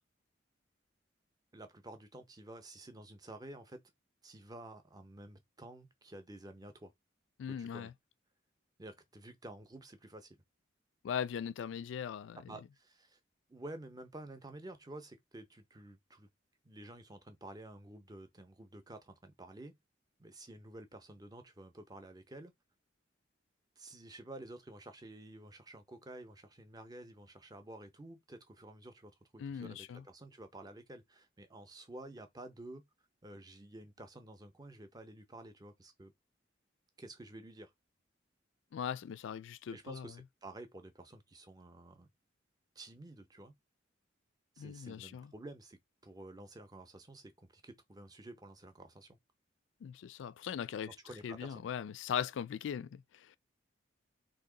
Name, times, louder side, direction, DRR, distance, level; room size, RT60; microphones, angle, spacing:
voice 1, 1.5-3.8 4.2-6.9 7.5-7.9 8.8-10.4 12.5-13.2 13.5-16.3 16.6-19.8 20.2-22.5 23.8-32.8 33.2-36.1 37.0-37.7 39.7-42.1 42.8-43.6 44.6-49.2 50.8-51.7, right 1 dB, 20° right, 0.6 m, -51 dB
voice 2, 7.4-7.9 11.0-12.6 29.4-30.0 38.7-40.1 44.6-45.3 49.8-51.0 51.2-53.4, left 8 dB, 75° left, 0.3 m, -39 dB
2.9 x 2.8 x 3.8 m
head